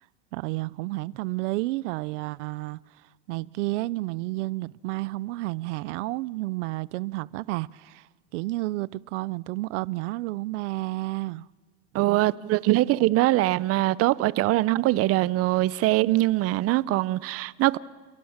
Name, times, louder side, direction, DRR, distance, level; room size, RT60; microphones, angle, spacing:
voice 1, 0.3-2.8 3.3-11.5, right 20 dB, 85° right, 0.6 m, -31 dB
voice 2, 11.9-17.8, right 17 dB, 40° right, 0.7 m, -22 dB
29.5 x 17.0 x 7.3 m
supercardioid pair, 135°, 35 cm